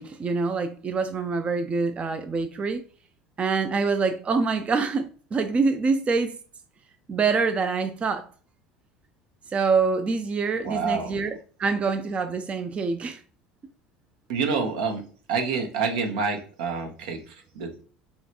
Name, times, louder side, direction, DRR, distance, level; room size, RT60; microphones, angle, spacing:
voice 1, 0.0-2.8 3.4-6.4 7.1-8.3 9.5-13.2, right 4 dB, 30° right, 0.4 m, -25 dB
voice 2, 10.5-11.1 14.3-15.0 15.3-17.8, right 5 dB, 75° right, 0.9 m, -28 dB
5.5 x 2.2 x 2.9 m
hypercardioid pair, 80°, 4 cm